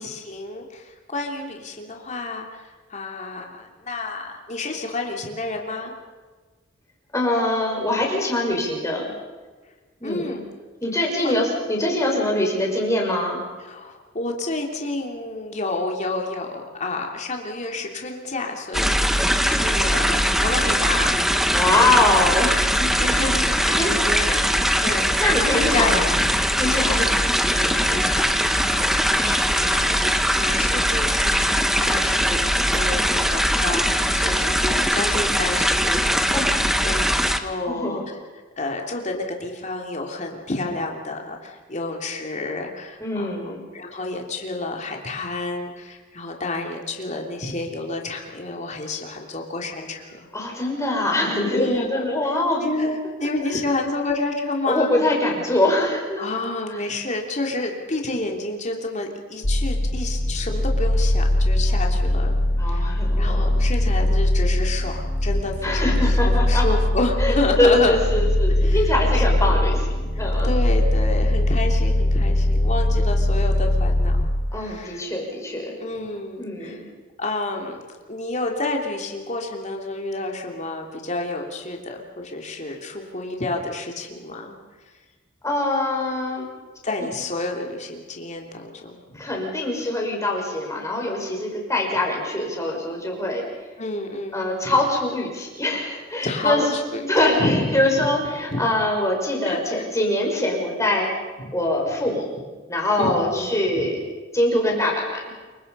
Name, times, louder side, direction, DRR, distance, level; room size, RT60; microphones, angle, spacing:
voice 1, 0.0-5.9 10.0-10.4 11.2-11.3 11.8-12.0 13.7-21.1 21.7-21.9 23.0-24.5 24.8-25.1 25.5-26.3 26.9-27.0 27.5-30.1 30.4-36.5 36.8-38.0 38.6-43.3 43.7-50.3 51.5-52.1 52.6-54.9 56.2-62.3 62.7-68.0 68.6-69.8 70.2-74.1 74.5-75.0 75.8-76.8 77.2-77.8 78.1-84.5 86.8-89.2 93.8-94.7 96.2-97.1 97.4-97.7 98.0-98.1 98.5-98.6 99.4-99.6 103.0-103.9, left 2 dB, 35° left, 1 dB, 3.1 m, -29 dB
voice 2, 7.1-9.1 10.0-10.4 10.8-13.4 21.5-22.9 23.8-23.9 25.2-26.2 26.6-27.0 29.2-29.9 36.3-36.5 37.7-38.1 43.0-43.6 50.3-52.7 53.5-53.6 54.7-56.2 62.6-63.6 65.6-66.6 67.2-69.8 70.2-70.5 74.5-75.7 76.4-76.9 85.4-86.5 89.2-93.4 94.3-96.6 97.1-101.1 101.5-102.3 102.7-104.0 104.3-105.2, left 1 dB, 15° left, -1 dB, 5.7 m, -23 dB
sound 1, 18.7-37.4, equal, ahead, 1.2 m, -21 dB
sound 2, 59.4-74.3, left 1 dB, 70° left, 3.2 m, -21 dB
28.0 x 24.0 x 5.6 m, 1.4 s
head